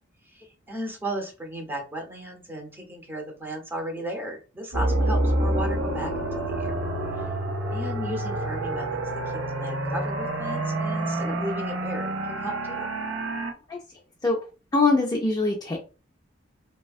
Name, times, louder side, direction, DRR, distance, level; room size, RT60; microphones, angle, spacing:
voice 1, 0.3-6.8 7.1-7.2 7.7-9.0 9.5-12.9, right 1 dB, 10° right, 1 dB, 0.7 m, -35 dB
sound 1, 4.7-13.5, right 1 dB, 70° right, 0.6 m, -28 dB
voice 2, 14.7-15.8, left 3 dB, 20° left, 0 dB, 0.4 m, -22 dB
3.3 x 2.1 x 2.3 m, 0.33 s
head